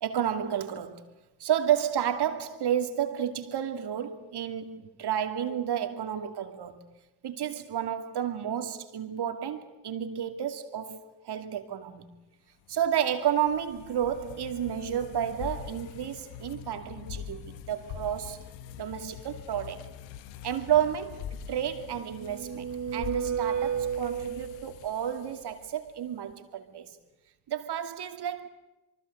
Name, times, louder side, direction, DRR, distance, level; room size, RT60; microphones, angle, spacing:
voice 1, 0.0-1.1 1.4-6.9 7.2-12.1 12.7-18.4 18.8-19.9 20.4-26.9 27.5-28.5, right 9 dB, 65° right, 2.7 m, -31 dB
sound 1, 12.7-26.0, left 9 dB, 80° left, 1.3 m, -44 dB
sound 2, 21.8-24.9, right 8 dB, 45° right, 1.1 m, -32 dB
27.0 x 23.5 x 8.1 m
hypercardioid pair, 45°, 43 cm